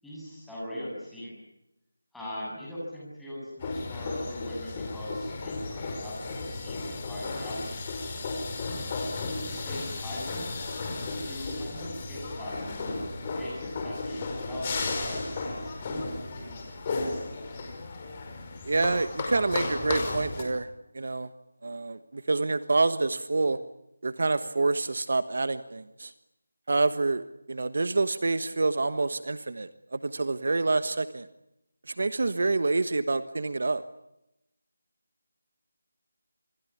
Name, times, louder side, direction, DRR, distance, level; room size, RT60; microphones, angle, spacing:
voice 1, 0.0-1.3 2.1-7.7 8.7-8.8 9.2-10.5 10.9-16.6, left 1 dB, ahead, -7 dB, 7.7 m, -40 dB
sound 1, 3.6-20.4, left 3 dB, 20° left, 5.1 m, -34 dB
voice 2, 18.6-20.7 20.9-21.3 21.6-23.6 24.0-26.1 26.7-31.3 31.9-33.8, right 3 dB, 55° right, 12 dB, 1.3 m, -27 dB
28.0 x 21.0 x 8.7 m, 0.87 s
figure-of-eight pair, 175°, 0 cm